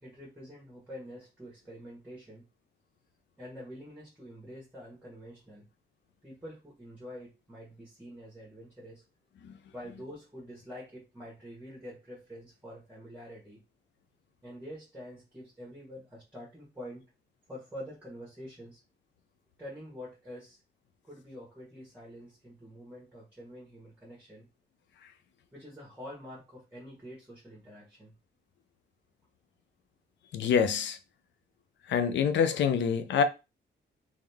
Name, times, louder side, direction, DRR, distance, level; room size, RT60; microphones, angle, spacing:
voice 1, 0.0-2.4 3.4-5.7 6.2-9.0 9.7-13.6 14.4-17.0 17.5-18.8 19.6-20.6 21.0-24.5 25.5-28.1, equal, 10° right, 1.7 m, -46 dB
voice 2, 30.3-31.0 31.9-33.2, left 7 dB, 75° left, 0.6 m, -26 dB
3.5 x 3.2 x 3.5 m
wide cardioid pair, 150°, 19 cm